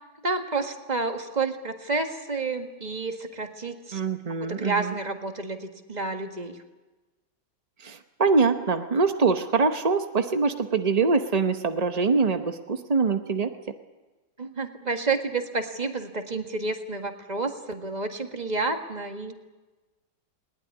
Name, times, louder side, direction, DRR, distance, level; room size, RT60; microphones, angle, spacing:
voice 1, 0.2-4.0 4.4-6.6 14.4-19.3, right 3 dB, 20° right, 6 dB, 1.6 m, -30 dB
voice 2, 3.9-4.9 7.8-13.5, right 4 dB, 60° right, 8 dB, 0.4 m, -24 dB
20.5 x 20.0 x 9.7 m, 1.2 s
omnidirectional pair, 2.2 m